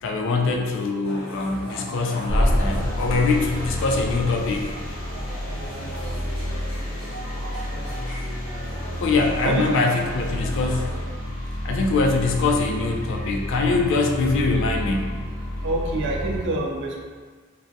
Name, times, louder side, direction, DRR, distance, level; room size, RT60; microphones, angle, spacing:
voice 1, 0.0-4.7 9.0-10.9 11.6-15.1, left 3 dB, 60° left, 2 dB, 0.3 m, -23 dB
sound 1, 1.0-11.0, right 1 dB, 10° right, 1.0 m, -38 dB
sound 2, 2.3-16.4, equal, 90° left, 0.7 m, -29 dB
voice 2, 11.2-11.7 15.4-17.0, right 2 dB, 55° right, 0 dB, 0.4 m, -28 dB
2.3 x 2.2 x 2.6 m, 1.5 s
head